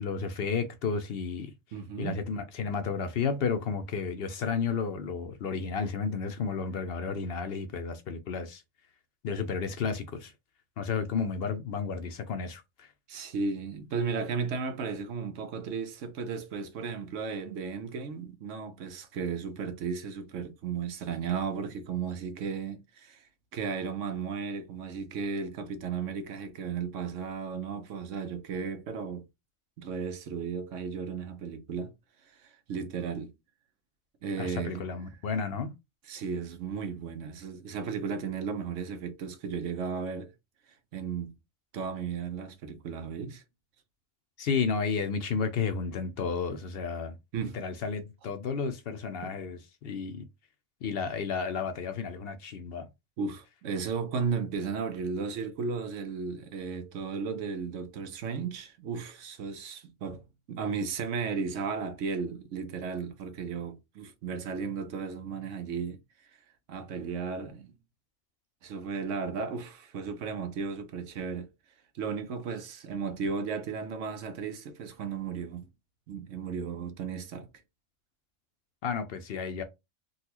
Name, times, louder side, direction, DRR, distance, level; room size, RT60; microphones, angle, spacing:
voice 1, 0.0-1.5 2.0-8.6 9.2-10.3 10.8-12.9 34.4-35.7 44.4-47.1 47.4-50.2 50.8-52.9 78.8-79.6, left 5 dB, 60° left, 0.6 m, -32 dB
voice 2, 1.7-2.2 13.1-29.3 29.8-31.9 32.2-33.3 34.2-34.9 36.0-40.3 40.9-41.3 41.7-43.4 47.3-47.6 53.2-60.2 60.5-66.0 66.7-67.7 68.6-71.5 71.9-75.7 76.1-77.5, right 5 dB, 70° right, 1.0 m, -35 dB
3.9 x 2.3 x 2.8 m
omnidirectional pair, 1.4 m